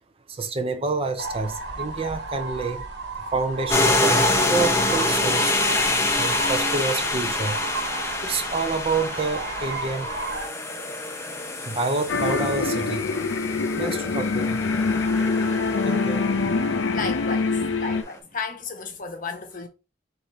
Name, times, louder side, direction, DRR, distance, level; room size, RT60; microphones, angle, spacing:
voice 1, 0.3-2.8 3.3-5.6 6.2-7.6 8.2-10.1 11.7-13.1 13.4-14.7 15.8-16.2, right 3 dB, 30° right, 0.5 m, -28 dB
sound 1, 1.2-10.5, right 3 dB, 60° right, 1.3 m, -33 dB
sound 2, 3.7-17.8, left 2 dB, 15° left, 0.7 m, -26 dB
sound 3, 12.1-18.0, left 4 dB, 80° left, 0.6 m, -24 dB
voice 2, 16.9-19.7, left 4 dB, 45° left, 0.9 m, -33 dB
4.9 x 2.6 x 4.1 m
head